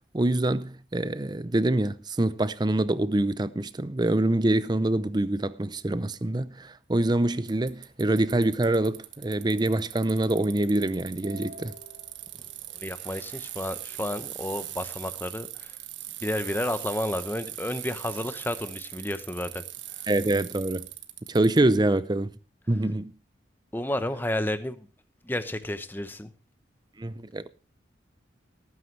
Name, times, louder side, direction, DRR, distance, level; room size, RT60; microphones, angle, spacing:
voice 1, 0.1-11.7 20.1-20.9 21.3-22.3 22.7-23.1 27.0-27.5, right 1 dB, 25° right, 0.5 m, -25 dB
sound 1, 7.2-14.0, equal, 50° right, 5.6 m, -54 dB
Bicycle, 7.5-21.6, right 13 dB, 90° right, 1.3 m, -40 dB
voice 2, 12.7-15.8 16.2-19.6 23.7-24.9 25.2-26.3, left 1 dB, 10° left, 0.8 m, -31 dB
18.5 x 9.5 x 3.2 m
head